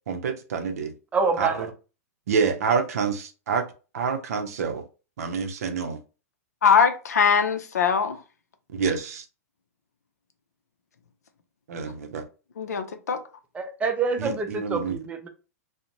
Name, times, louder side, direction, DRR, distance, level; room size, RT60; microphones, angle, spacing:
voice 1, 0.1-0.9 1.4-1.5 2.3-3.6 3.9-4.8 5.2-6.0 8.7-9.2 11.7-12.2 14.2-15.0, right 5 dB, 70° right, 0.5 m, -27 dB
voice 2, 1.1-1.7 13.5-15.3, right 4 dB, 15° right, 0.5 m, -26 dB
voice 3, 6.6-8.2 12.6-13.2, left 6 dB, 85° left, 0.5 m, -21 dB
2.5 x 2.0 x 2.8 m
hypercardioid pair, 115°, 8 cm